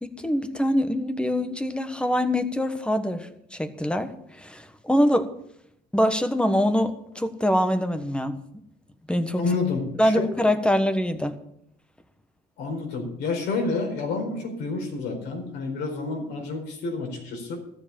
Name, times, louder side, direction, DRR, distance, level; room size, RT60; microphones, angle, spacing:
voice 1, 0.0-5.3 5.9-8.4 9.1-9.4 10.0-11.3, equal, 5° left, 9 dB, 1.3 m, -24 dB
voice 2, 9.4-10.2 12.6-17.6, left 3 dB, 85° left, 2 dB, 4.4 m, -29 dB
13.5 x 7.7 x 7.1 m, 0.74 s
cardioid pair, 110°, 17 cm